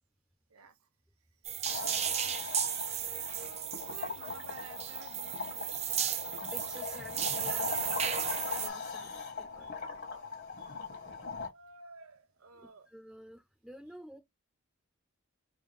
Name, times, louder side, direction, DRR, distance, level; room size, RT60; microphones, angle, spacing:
sound 1, 1.4-8.7, right 9 dB, 30° right, 0.4 m, -35 dB
sound 2, 1.6-11.5, left 4 dB, 55° left, 1.5 m, -40 dB
voice 1, 3.3-5.8 9.6-9.7 10.6-12.9, right 4 dB, 90° right, 0.8 m, -54 dB
voice 2, 6.5-7.9 8.5-9.1 9.4-9.9 12.9-14.2, equal, 5° right, 0.8 m, -51 dB
3.8 x 2.3 x 3.4 m
head